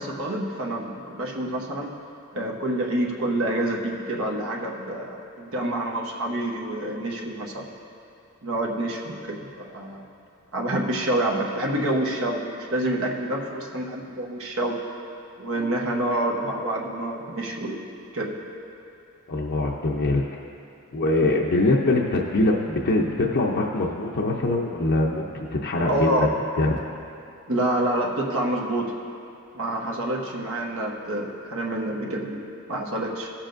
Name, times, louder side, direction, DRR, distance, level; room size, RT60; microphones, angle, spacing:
voice 1, 0.0-1.9 2.3-7.7 8.4-10.1 10.5-14.8 15.4-17.9 18.1-18.3 25.9-26.3 27.5-28.9 29.5-33.3, right 1 dB, 65° right, -1 dB, 1.1 m, -27 dB
voice 2, 19.3-20.3 20.9-26.3 26.6-26.8, left 2 dB, 50° left, -2 dB, 0.6 m, -23 dB
18.5 x 7.3 x 2.6 m, 2.6 s
head